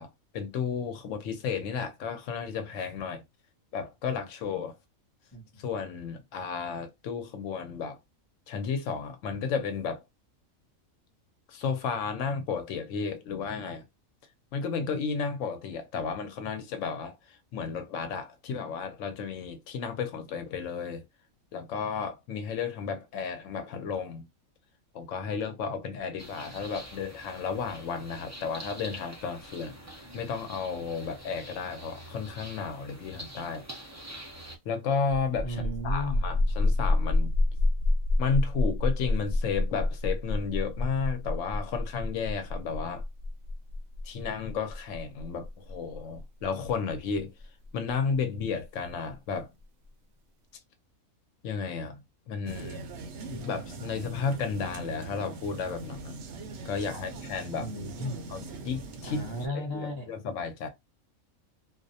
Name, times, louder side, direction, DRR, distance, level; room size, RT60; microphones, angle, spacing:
voice 1, 0.0-3.2 3.7-4.8 5.6-8.0 8.5-10.0 11.5-13.8 14.5-21.0 21.5-24.2 24.9-29.8 30.1-33.6 34.7-37.3 38.2-43.0 44.0-47.3 47.7-49.5 51.4-52.0 52.3-52.8 53.3-56.1 56.6-57.7 58.3-59.2 59.5-60.7, left 5 dB, 70° left, 0.9 m, -33 dB
voice 2, 5.3-5.7 35.4-36.5 56.9-57.0 57.6-58.2 59.0-60.1, left 1 dB, 25° left, 0.6 m, -36 dB
sound 1, 26.2-34.6, right 1 dB, 25° right, 0.3 m, -46 dB
sound 2, 35.0-48.4, left 2 dB, 85° right, 1.0 m, -28 dB
sound 3, 52.5-59.5, right 3 dB, 65° right, 0.7 m, -41 dB
2.4 x 2.1 x 2.6 m
omnidirectional pair, 1.4 m